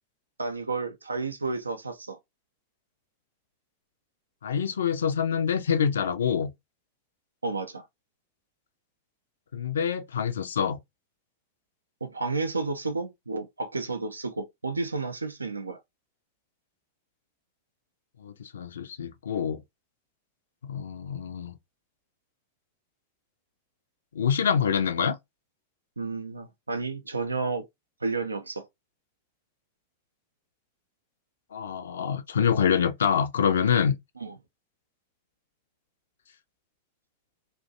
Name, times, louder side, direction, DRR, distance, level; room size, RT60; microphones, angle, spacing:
voice 1, 0.4-2.2 7.4-7.9 12.0-15.8 26.0-27.6 28.0-28.7 34.2-34.4, right 3 dB, 80° right, 0.3 m, -31 dB
voice 2, 4.4-6.5 9.5-10.8 18.2-19.6 20.6-21.5 24.1-25.2 31.5-34.0, left 7 dB, 65° left, 0.4 m, -26 dB
2.5 x 2.2 x 2.5 m
figure-of-eight pair, 90°, 0 cm